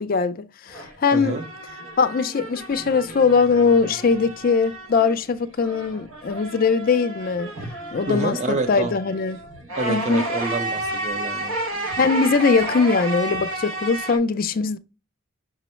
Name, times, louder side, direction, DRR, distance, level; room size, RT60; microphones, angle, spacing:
voice 1, 0.0-1.4 2.0-7.5 7.9-9.4 9.9-10.3 12.0-14.8, left 5 dB, 40° left, 0.4 m, -21 dB
sound 1, 0.7-5.3 5.5-14.2, right 1 dB, 70° right, 0.8 m, -32 dB
voice 2, 1.1-1.4 8.1-8.9 9.8-11.5, right 3 dB, 30° right, 0.7 m, -27 dB
6.1 x 2.0 x 4.3 m
head